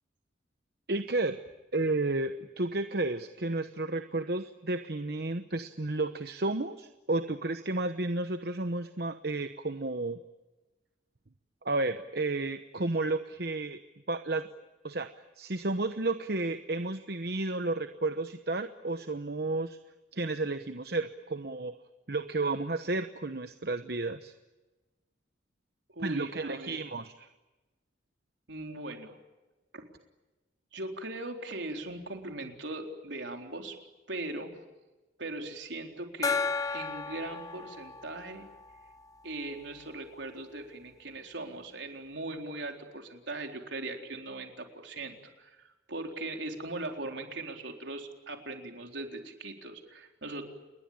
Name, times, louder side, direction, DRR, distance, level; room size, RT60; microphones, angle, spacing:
voice 1, 0.9-1.4 1.7-10.2 11.6-13.8 14.1-14.5 14.8-15.1 15.4-19.8 20.1-21.7 22.1-24.3 26.0-27.3, right 2 dB, 55° right, 9 dB, 1.0 m, -32 dB
voice 2, 25.9-26.8 28.5-29.2 29.7-29.9 30.7-33.8 34.1-34.5 35.2-36.4 36.7-38.5 39.2-50.4, right 2 dB, 75° right, 3 dB, 4.1 m, -39 dB
Gong, 36.2-39.5, left 5 dB, 20° left, 0.8 m, -34 dB
29.5 x 21.5 x 8.9 m, 1.1 s
head